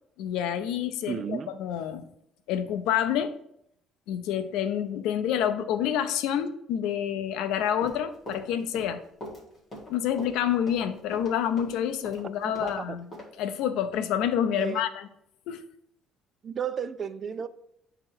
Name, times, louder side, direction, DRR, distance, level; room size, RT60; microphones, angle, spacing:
voice 1, 0.2-2.0 2.5-3.4 4.1-9.0 9.9-13.1 13.4-15.1 15.5-15.7, left 9 dB, 85° left, 0.5 m, -28 dB
voice 2, 1.1-1.5 12.4-13.0 14.6-14.9 16.4-17.5, right 7 dB, 35° right, 0.3 m, -33 dB
Run, 7.6-12.8 13.1-13.3, equal, 25° left, 1.8 m, -42 dB
8.6 x 2.9 x 4.6 m
cardioid pair, 150°, 0 cm